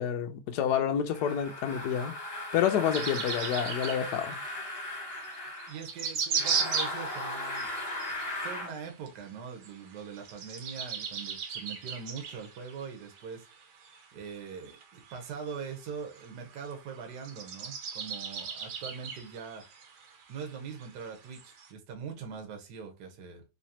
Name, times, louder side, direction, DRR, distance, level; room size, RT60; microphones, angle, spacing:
voice 1, 0.0-2.1 2.5-4.4, left 9 dB, 75° left, 0.9 m, -28 dB
sound 1, 1.1-5.8 6.3-8.7, left 1 dB, 35° left, 1.3 m, -37 dB
sound 2, 2.9-21.7, right 6 dB, 70° right, 1.7 m, -38 dB
voice 2, 5.7-7.7 8.4-13.8 14.1-19.6 20.3-23.4, right 6 dB, 55° right, 1.4 m, -42 dB
4.0 x 3.0 x 2.8 m
omnidirectional pair, 2.4 m